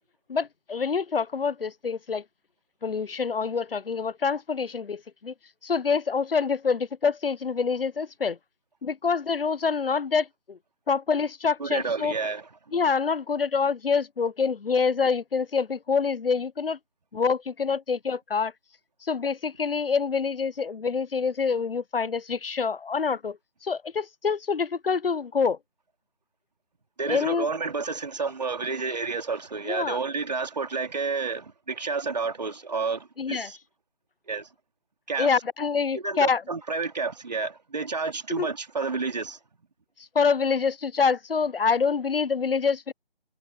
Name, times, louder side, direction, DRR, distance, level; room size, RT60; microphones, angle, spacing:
voice 1, 0.3-2.2 2.8-5.3 5.6-8.4 8.8-10.6 10.9-12.1 12.7-16.8 17.1-18.5 19.0-23.4 23.6-25.6 27.1-27.5 29.6-30.0 33.2-33.5 35.2-36.4 38.4-38.5 40.1-42.9, left 5 dB, 70° left, 0.6 m, -26 dB
voice 2, 11.6-12.5 27.0-33.6 34.3-34.5 35.1-35.3 35.9-39.4, right 4 dB, 45° right, 3.2 m, -30 dB
figure-of-eight pair, 160°, 30 cm